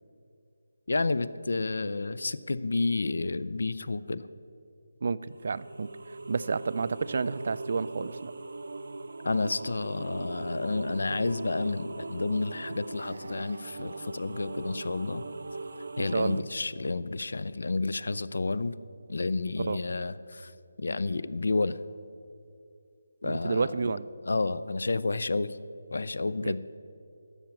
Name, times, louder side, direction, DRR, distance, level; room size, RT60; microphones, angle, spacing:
voice 1, 0.9-4.3 9.2-15.2 16.0-18.7 19.1-20.5 20.8-21.8 23.2-23.9 24.3-25.6 25.9-26.6, left 3 dB, 65° left, 16 dB, 0.5 m, -30 dB
voice 2, 5.0-8.3 16.1-16.4 19.6-19.8 23.2-24.1 26.4-26.5, right 4 dB, 40° right, 17 dB, 0.3 m, -30 dB
sound 1, 5.4-16.4, right 3 dB, 65° right, 0.7 m, -40 dB
13.5 x 5.8 x 8.6 m, 2.5 s
figure-of-eight pair, 175°, 0 cm